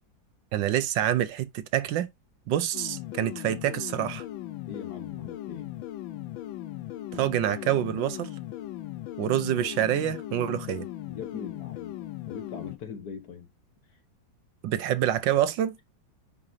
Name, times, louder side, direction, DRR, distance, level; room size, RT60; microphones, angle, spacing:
voice 1, 0.5-2.1 2.5-4.2 7.1-8.3 9.2-10.9 14.6-15.8, right 11 dB, 75° right, 1.4 m, -26 dB
sound 1, 2.7-12.8, left 14 dB, 85° left, 1.4 m, -38 dB
voice 2, 4.7-5.7 11.1-12.0 12.3-13.5, left 6 dB, 55° left, 1.5 m, -40 dB
9.7 x 4.9 x 2.7 m
omnidirectional pair, 2.1 m